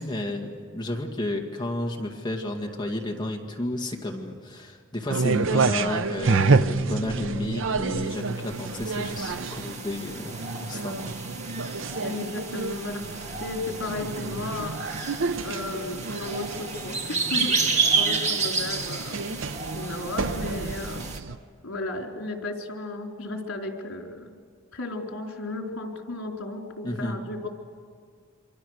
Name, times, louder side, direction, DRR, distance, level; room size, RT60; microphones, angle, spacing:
voice 1, 0.0-11.2 26.8-27.2, left 1 dB, 20° left, 2 dB, 2.1 m, -32 dB
sound 1, 5.1-21.4, right 4 dB, 65° right, 0.7 m, -29 dB
sound 2, 8.2-21.2, right 4 dB, 35° right, 2.0 m, -31 dB
voice 2, 12.0-15.0 15.4-19.4 19.7-21.1 21.6-24.3 24.7-27.5, left 2 dB, 80° left, 1 dB, 4.1 m, -34 dB
28.0 x 25.0 x 6.6 m, 2.1 s
head